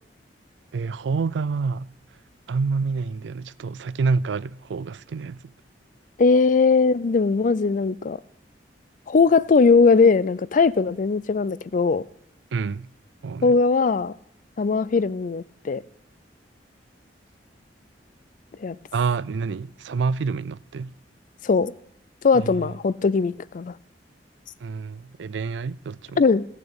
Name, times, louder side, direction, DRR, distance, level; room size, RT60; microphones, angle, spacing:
voice 1, 0.7-1.9 2.5-5.4 12.5-12.9 13.2-13.6 18.9-20.9 22.3-22.7 24.6-26.2, right 4 dB, 85° right, 0.4 m, -27 dB
voice 2, 6.2-8.2 9.1-12.0 13.4-14.1 14.6-15.8 18.6-18.8 21.4-21.7 22.2-23.7 26.2-26.4, left 4 dB, 45° left, 0.4 m, -19 dB
15.5 x 6.6 x 8.8 m
head